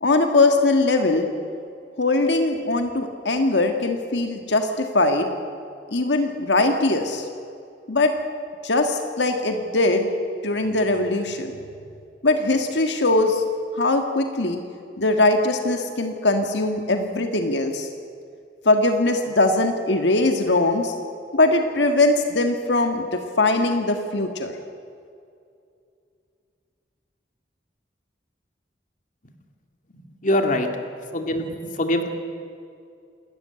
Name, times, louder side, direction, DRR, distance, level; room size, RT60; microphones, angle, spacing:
voice 1, 0.0-1.3 2.0-5.3 5.9-7.2 7.9-8.1 8.6-10.1 10.4-11.5 12.2-13.4 13.7-14.6 15.0-17.9 18.6-20.9 21.3-24.5, left 2 dB, 85° left, 5 dB, 1.7 m, -21 dB
voice 2, 30.2-30.7 31.1-32.1, left 1 dB, 50° left, 5 dB, 2.3 m, -23 dB
27.5 x 13.5 x 9.8 m, 2.4 s
head